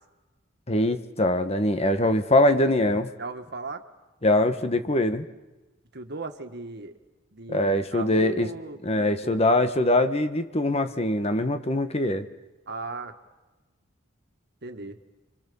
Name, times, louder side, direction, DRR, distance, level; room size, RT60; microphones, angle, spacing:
voice 1, 0.7-3.1 4.2-5.3 7.5-8.5 8.8-12.3, left 1 dB, 30° left, 9 dB, 1.3 m, -23 dB
voice 2, 3.2-3.8 5.9-6.9 7.3-9.4 12.7-13.1 14.6-15.0, right 3 dB, 55° right, 7 dB, 1.8 m, -37 dB
29.5 x 25.0 x 7.1 m, 1.1 s
head